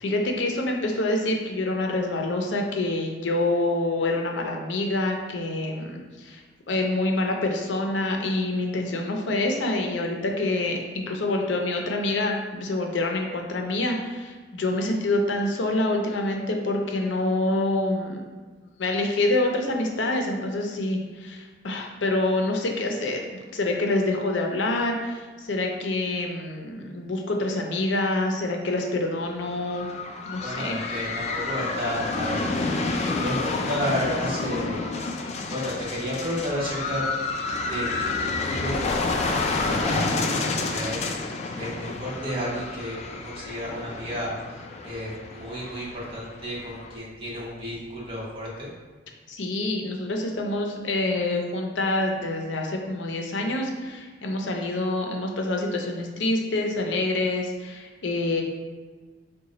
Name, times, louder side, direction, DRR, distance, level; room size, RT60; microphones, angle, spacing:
voice 1, 0.0-6.4 6.7-18.2 18.8-29.9 30.3-30.8 49.3-58.4, left 2 dB, 90° left, 2 dB, 0.6 m, -26 dB
sound 1, 29.3-47.0, left 3 dB, 40° left, 0.3 m, -29 dB
voice 2, 30.4-32.4 33.0-34.8 35.5-37.0 37.7-41.1 41.6-44.3 44.8-48.7, equal, 30° right, -6 dB, 1.1 m, -32 dB
4.0 x 2.3 x 3.8 m, 1.4 s
head